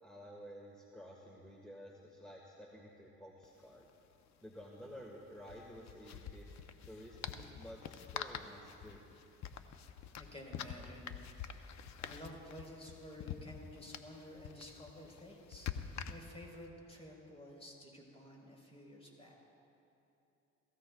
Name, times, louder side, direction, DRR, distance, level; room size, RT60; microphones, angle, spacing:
voice 1, 0.0-3.8 4.4-6.5 6.8-9.0, equal, 5° left, -2 dB, 1.6 m, -52 dB
sound 1, 3.4-3.5 3.7-3.9 5.4-16.6, left 8 dB, 65° left, 0.8 m, -47 dB
voice 2, 10.2-19.3, left 1 dB, 20° left, -1 dB, 4.1 m, -52 dB
29.5 x 15.0 x 2.3 m, 2.9 s
cardioid pair, 90°, 30 cm